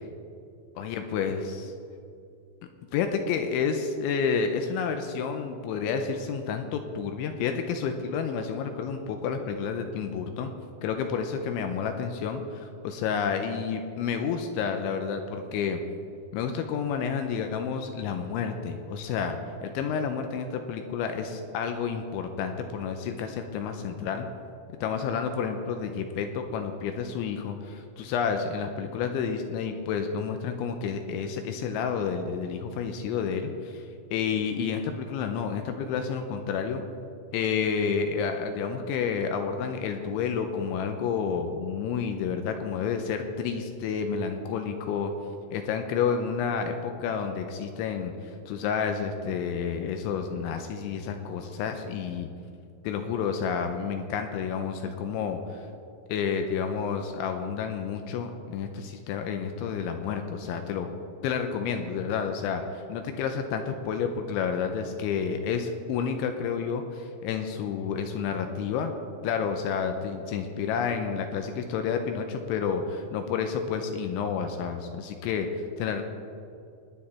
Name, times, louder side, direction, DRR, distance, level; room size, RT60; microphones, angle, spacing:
voice 1, 0.8-1.7 2.9-10.5 10.8-15.8 16.3-19.4 19.6-24.3 24.8-33.9 34.1-36.8 37.3-45.1 45.5-52.3 52.8-55.6 56.1-60.9 61.2-62.6 62.9-68.9 69.2-76.0, left 6 dB, 80° left, 6 dB, 2.9 m, -30 dB
18.0 x 10.0 x 4.3 m, 2.5 s
omnidirectional pair, 5.8 m